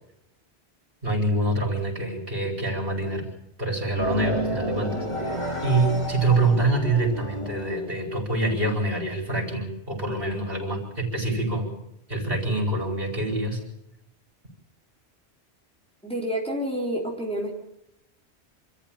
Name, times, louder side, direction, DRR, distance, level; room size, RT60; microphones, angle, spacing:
voice 1, 1.0-3.3 3.6-5.1 5.6-11.7 12.1-13.6, right 2 dB, 60° right, 1 dB, 5.4 m, -25 dB
sound 1, 4.0-7.9, equal, 25° left, 3.8 m, -30 dB
voice 2, 16.0-17.5, equal, 5° left, -2 dB, 3.8 m, -28 dB
26.0 x 14.0 x 8.9 m, 0.81 s
omnidirectional pair, 1.1 m